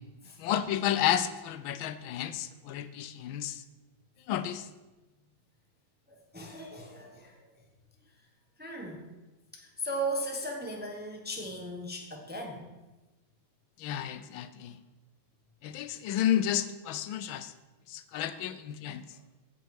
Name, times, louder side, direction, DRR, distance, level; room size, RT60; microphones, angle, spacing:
voice 1, 0.4-3.6 4.3-4.7 13.8-14.8 15.6-17.5 17.9-19.0, left 11 dB, 85° left, 12 dB, 1.4 m, -31 dB
voice 2, 6.1-7.5 8.6-9.0 9.5-12.7 18.1-18.4 19.1-19.2, right 1 dB, 5° right, 1 dB, 0.9 m, -37 dB
16.0 x 5.7 x 4.7 m, 1.1 s
omnidirectional pair, 2.1 m